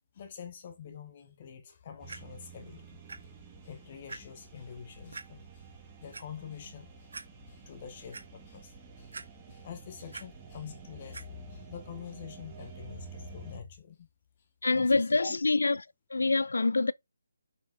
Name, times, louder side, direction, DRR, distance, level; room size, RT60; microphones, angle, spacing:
voice 1, 0.1-3.3 3.6-5.7 6.0-7.1 7.5-14.1 14.7-15.4, left 7 dB, 25° left, 0.8 m, -46 dB
sound 1, 2.0-13.6, right 6 dB, 10° right, 1.2 m, -50 dB
Clock, 2.1-2.2 3.1-3.2 3.6-3.7 4.1-4.2 5.1-5.3 5.9-6.2 6.7-6.8 7.1-7.2 7.7-8.2 9.1-9.6 9.9-10.2 11.1-11.2 12.0-12.1, right 4 dB, 60° right, 1.4 m, -43 dB
voice 2, 14.6-15.8 16.1-16.9, left 3 dB, 90° left, 0.4 m, -25 dB
6.4 x 4.7 x 3.9 m
hypercardioid pair, 175°, 0 cm